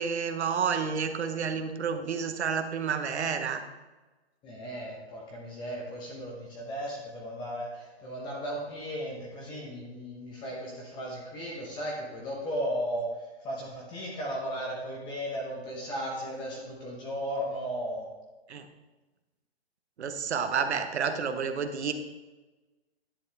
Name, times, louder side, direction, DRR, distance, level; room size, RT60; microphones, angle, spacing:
voice 1, 0.0-3.6 18.5-18.7 20.0-21.9, right 6 dB, 85° right, 8 dB, 1.0 m, -30 dB
voice 2, 4.4-13.1 13.4-18.1, equal, 15° left, -3 dB, 0.9 m, -35 dB
10.0 x 5.5 x 3.4 m, 1.2 s
hypercardioid pair, 160°, 32 cm